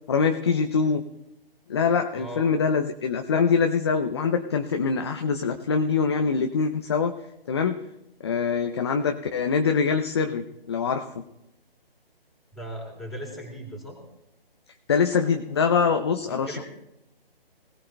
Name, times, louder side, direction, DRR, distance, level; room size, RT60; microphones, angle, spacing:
voice 1, 0.1-1.0 1.7-7.1 7.5-7.8 8.2-11.2 14.9-16.6, left 5 dB, 25° left, 6 dB, 0.6 m, -24 dB
voice 2, 12.5-14.0 16.5-16.6, equal, ahead, -2 dB, 3.3 m, -37 dB
24.5 x 18.0 x 2.2 m, 0.87 s
figure-of-eight pair, 150°, 30 cm